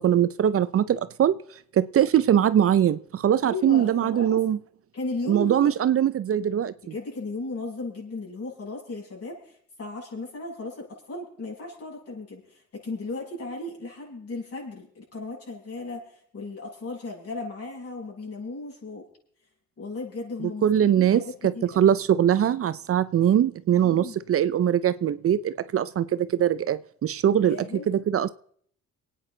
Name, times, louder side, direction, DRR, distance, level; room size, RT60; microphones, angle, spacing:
voice 1, 0.0-1.4 1.7-4.6 5.3-6.7 20.6-27.6 27.9-28.3, right 10 dB, 50° right, 14 dB, 0.6 m, -22 dB
voice 2, 3.4-4.4 4.9-5.7 6.8-19.0 19.8-20.6 20.9-21.9 23.8-24.2 27.2-27.9, left 2 dB, 50° left, -2 dB, 7.1 m, -36 dB
25.0 x 9.4 x 3.9 m, 0.63 s
cardioid pair, 90°, 30 cm